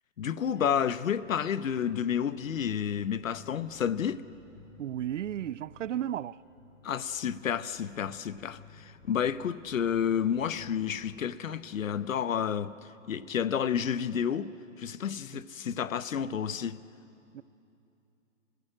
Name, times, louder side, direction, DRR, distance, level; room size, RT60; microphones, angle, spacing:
voice 1, 0.2-4.2 6.8-14.5 14.8-16.8, left 8 dB, 75° left, 0.9 m, -30 dB
sound 1, 0.6-11.2, left 4 dB, 40° left, 2.3 m, -55 dB
voice 2, 4.8-6.4 15.3-15.4 17.3-17.4, right 11 dB, 70° right, 0.5 m, -34 dB
25.5 x 16.0 x 7.7 m
hypercardioid pair, 160°, 39 cm